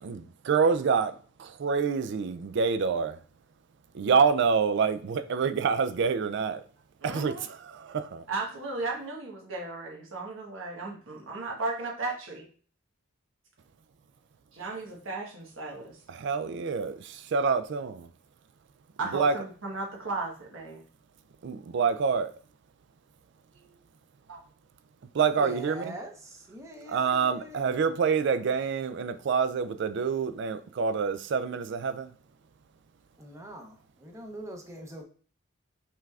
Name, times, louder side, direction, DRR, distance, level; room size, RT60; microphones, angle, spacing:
voice 1, 0.0-1.1 1.4-3.2 3.9-6.6 7.0-8.2 16.1-18.1 19.1-19.3 21.4-22.3 25.1-25.9 26.9-32.1, right 5 dB, 65° right, 0.4 m, -27 dB
voice 2, 7.0-7.4 8.3-12.4 14.5-15.9 19.0-20.8 23.5-23.7 24.3-24.4, right 3 dB, 90° right, 1.2 m, -35 dB
voice 3, 25.4-27.9 33.2-35.0, right 1 dB, 15° right, 0.7 m, -43 dB
5.8 x 3.3 x 2.4 m
head